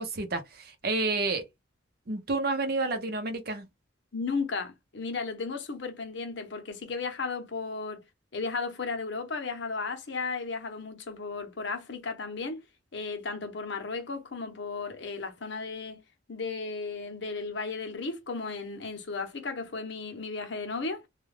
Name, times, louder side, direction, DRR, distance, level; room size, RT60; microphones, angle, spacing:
voice 1, 0.0-1.4 2.1-3.7, right 3 dB, 50° right, 0.7 m, -30 dB
voice 2, 4.1-8.0 8.3-12.6 12.9-16.0 16.3-21.0, left 4 dB, 65° left, 0.8 m, -35 dB
2.3 x 2.3 x 3.3 m
head